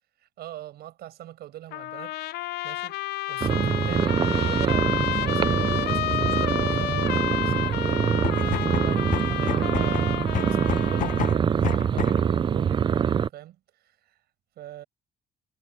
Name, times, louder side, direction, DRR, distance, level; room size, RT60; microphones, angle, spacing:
voice 1, 0.2-3.0 3.3-14.2 14.6-14.8, right 13 dB, 70° right, 7.7 m, -43 dB
Trumpet, 1.7-11.4, left 17 dB, 75° left, 0.6 m, -31 dB
sound 1, 3.4-13.3, right 7 dB, 30° right, 0.4 m, -24 dB
sound 2, 8.1-12.3, left 11 dB, 50° left, 0.9 m, -32 dB
cardioid pair, 110°, 17 cm